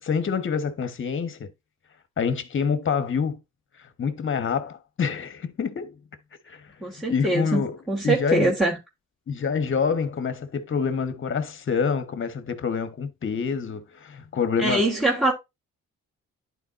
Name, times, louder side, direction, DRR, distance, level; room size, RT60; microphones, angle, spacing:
voice 1, 0.0-1.5 2.2-3.4 3.8-6.0 6.4-7.8 8.0-8.5 9.3-14.9, left 6 dB, 40° left, 1.3 m, -27 dB
voice 2, 6.8-8.8 14.6-15.3, right 2 dB, ahead, 2.8 m, -23 dB
11.0 x 4.8 x 2.6 m
cardioid pair, 90°, 30 cm